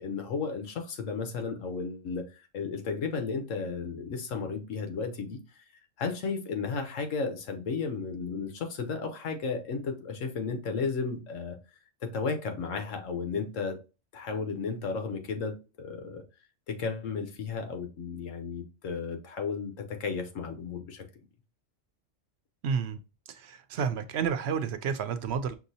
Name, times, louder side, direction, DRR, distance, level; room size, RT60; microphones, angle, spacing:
voice 1, 0.0-5.4 6.0-11.6 12.0-13.8 14.1-16.2 16.7-21.0, left 5 dB, 90° left, 1.3 m, -34 dB
voice 2, 22.6-23.0 23.3-25.5, right 6 dB, 65° right, 0.8 m, -30 dB
5.9 x 2.7 x 2.7 m
omnidirectional pair, 1.3 m